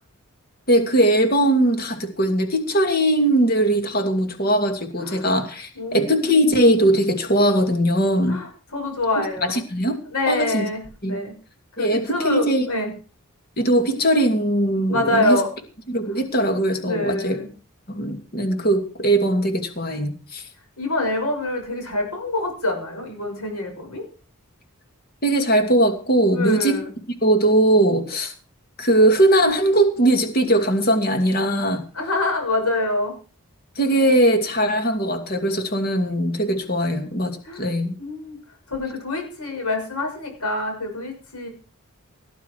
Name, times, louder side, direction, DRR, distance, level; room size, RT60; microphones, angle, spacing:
voice 1, 0.7-8.4 9.5-10.0 10.3-10.7 11.0-11.2 11.8-12.7 13.6-15.4 15.9-17.4 17.9-20.4 25.2-26.8 27.2-28.3 28.8-31.8 33.8-37.9, right 1 dB, 45° left, 6 dB, 2.6 m, -20 dB
voice 2, 5.7-6.4 8.3-9.6 10.1-11.3 11.8-12.9 14.9-15.5 16.1-16.2 16.8-17.5 20.8-24.0 26.3-26.9 31.9-33.1 37.4-37.7 38.0-38.4 38.7-41.5, left 2 dB, 85° left, 3 dB, 6.3 m, -26 dB
18.0 x 10.5 x 4.8 m, 0.37 s
head